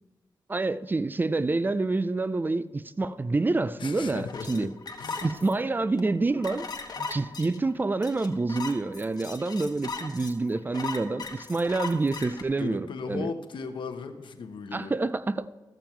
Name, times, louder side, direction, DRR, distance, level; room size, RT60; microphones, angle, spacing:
voice 1, 0.5-4.7 5.2-6.7 7.0-13.3 14.7-15.5, right 3 dB, 25° right, 0.4 m, -27 dB
voice 2, 3.8-4.7 5.0-5.3 12.6-15.0, left 5 dB, 85° left, 0.9 m, -37 dB
sound 1, 4.3-12.4, left 4 dB, 55° left, 1.1 m, -38 dB
13.5 x 7.1 x 4.5 m
wide cardioid pair, 95°, 8 cm